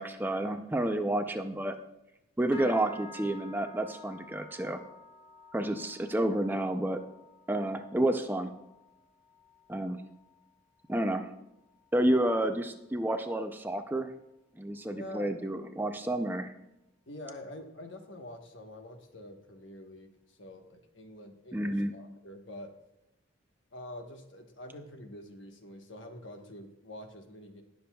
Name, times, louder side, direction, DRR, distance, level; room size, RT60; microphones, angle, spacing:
voice 1, 0.0-1.8 2.4-4.8 5.5-7.0 7.5-8.5 9.7-10.0 10.9-11.3 11.9-14.1 14.6-16.5 21.5-21.9, right 1 dB, 10° right, 7 dB, 0.4 m, -30 dB
voice 2, 2.4-2.9 14.9-15.3 17.1-22.7 23.7-27.6, left 1 dB, 70° left, 5 dB, 1.2 m, -46 dB
sound 1, 2.5-12.1 12.4-12.8 13.2-13.5 14.1-14.2, left 2 dB, 30° left, 0.9 m, -53 dB
19.0 x 6.9 x 2.3 m, 0.90 s
head